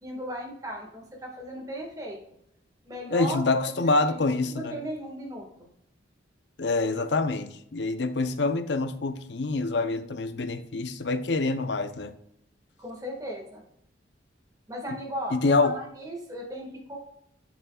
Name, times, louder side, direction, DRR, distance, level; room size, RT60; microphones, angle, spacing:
voice 1, 0.0-2.2 2.8-5.5 12.8-13.6 14.7-15.4 15.6-17.0, equal, 20° right, 1.7 m, -37 dB
voice 2, 3.1-4.8 6.6-12.1 15.3-15.8, left 3 dB, 65° left, 0.6 m, -26 dB
8.0 x 7.3 x 2.3 m
head